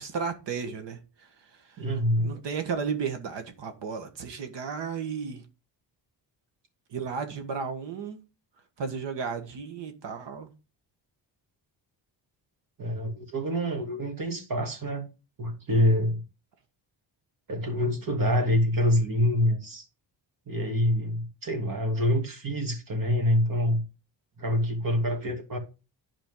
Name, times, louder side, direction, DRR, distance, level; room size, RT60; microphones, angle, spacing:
voice 1, 0.0-1.9 2.2-5.4 6.9-8.2 8.8-10.5, right 6 dB, 70° right, 1.5 m, -34 dB
voice 2, 1.8-2.3 12.8-15.0 15.4-16.2 17.5-19.9 20.5-23.8 24.4-25.6, equal, 50° right, 2.5 m, -26 dB
10.5 x 5.0 x 3.7 m
cardioid pair, 90°, 44 cm